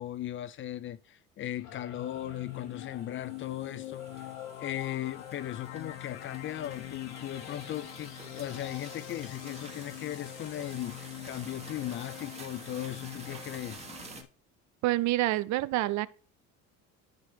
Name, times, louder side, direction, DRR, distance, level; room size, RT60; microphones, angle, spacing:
voice 1, 0.0-4.2 4.6-13.9, left 12 dB, 40° left, 0.5 m, -38 dB
Singing / Musical instrument, 1.6-10.5, left 7 dB, 70° left, 2.2 m, -52 dB
sound 1, 1.7-14.3, left 16 dB, 90° left, 0.6 m, -44 dB
sound 2, 2.2-14.2, right 4 dB, 20° right, 1.4 m, -50 dB
voice 2, 14.8-16.1, right 17 dB, 60° right, 0.6 m, -27 dB
13.0 x 4.8 x 3.2 m
supercardioid pair, 105°, 33 cm